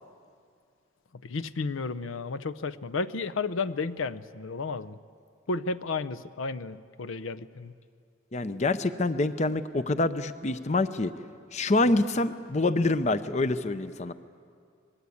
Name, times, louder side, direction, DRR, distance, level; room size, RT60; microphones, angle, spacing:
voice 1, 1.2-5.0 5.5-7.7, left 4 dB, 75° left, 13 dB, 0.6 m, -32 dB
voice 2, 8.3-11.1 11.5-14.1, left 2 dB, 35° left, 12 dB, 0.6 m, -26 dB
26.0 x 21.0 x 8.5 m, 2.2 s
head